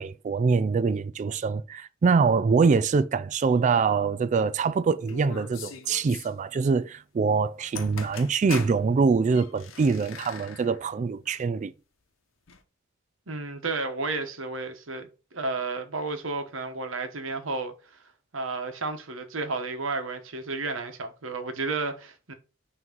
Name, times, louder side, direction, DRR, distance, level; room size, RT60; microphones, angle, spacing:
voice 1, 0.0-11.7, right 5 dB, 40° right, 0.3 m, -24 dB
sound 1, 5.1-6.3 7.5-7.6 7.7-8.8 9.2-10.9 11.2-11.4 12.5-12.6, left 6 dB, 90° left, 0.9 m, -41 dB
voice 2, 13.3-18.0 18.3-22.3, right 3 dB, 80° right, 1.2 m, -32 dB
6.0 x 3.1 x 5.3 m
head